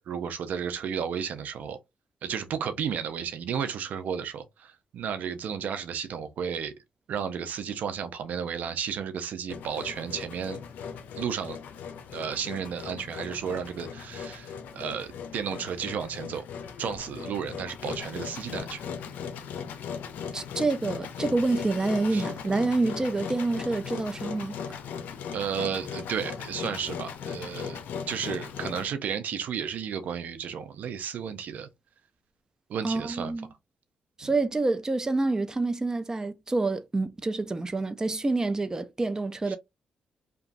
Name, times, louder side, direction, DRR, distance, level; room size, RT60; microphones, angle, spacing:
voice 1, 0.0-1.8 2.2-6.7 7.1-10.6 11.2-11.6 12.1-16.5 16.8-18.8 22.1-22.3 25.3-31.7 32.7-33.3 39.5-39.6, right 7 dB, 75° right, 0.5 m, -33 dB
Engine, 9.5-28.9, left 7 dB, 85° left, 0.5 m, -38 dB
voice 2, 20.3-24.8 32.8-33.5 34.2-39.6, right 3 dB, 20° right, 0.4 m, -27 dB
3.0 x 2.3 x 2.5 m
cardioid pair, 65°, 3 cm